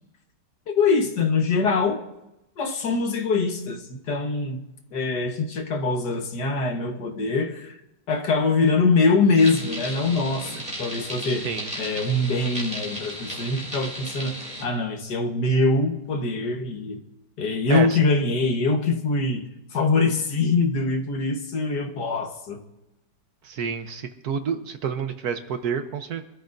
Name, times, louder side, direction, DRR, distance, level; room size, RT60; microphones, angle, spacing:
voice 1, 0.7-2.0 2.6-4.6 4.9-7.8 8.1-11.5 11.8-14.3 14.6-17.0 17.4-19.4 19.7-22.6, left 3 dB, 65° left, 4 dB, 1.9 m, -23 dB
sound 1, 9.4-14.6, right 1 dB, 5° right, 2.6 m, -35 dB
voice 2, 11.3-11.7 17.7-18.0 23.4-26.3, right 6 dB, 65° right, 8 dB, 1.4 m, -29 dB
24.5 x 13.0 x 2.6 m, 0.92 s
omnidirectional pair, 1.9 m